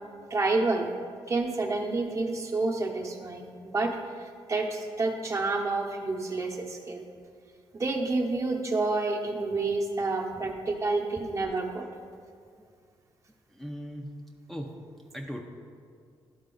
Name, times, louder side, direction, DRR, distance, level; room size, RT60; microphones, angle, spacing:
voice 1, 0.3-0.9 1.3-7.0 7.7-11.9, right 3 dB, 35° right, 1 dB, 0.9 m, -29 dB
voice 2, 13.5-14.1 14.5-14.7 15.1-15.4, equal, ahead, 0 dB, 0.6 m, -37 dB
11.5 x 4.1 x 3.9 m, 2.2 s
cardioid pair, 90°, 9 cm